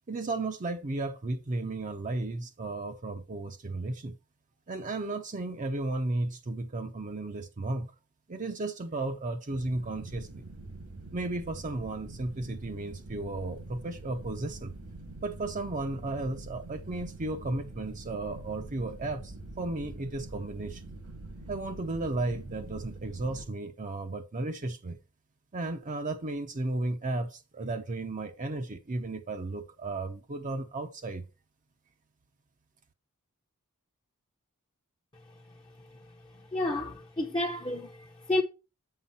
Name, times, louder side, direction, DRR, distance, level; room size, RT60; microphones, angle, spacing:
voice 1, 0.1-4.1 4.7-7.9 8.3-10.4 11.1-14.7 15.2-20.8 21.5-25.0 25.5-31.2, right 2 dB, 35° right, 0.6 m, -34 dB
sound 1, 9.5-23.4, right 2 dB, 85° right, 2.3 m, -45 dB
voice 2, 36.5-38.4, left 2 dB, 20° left, 0.7 m, -30 dB
8.4 x 5.6 x 4.1 m
head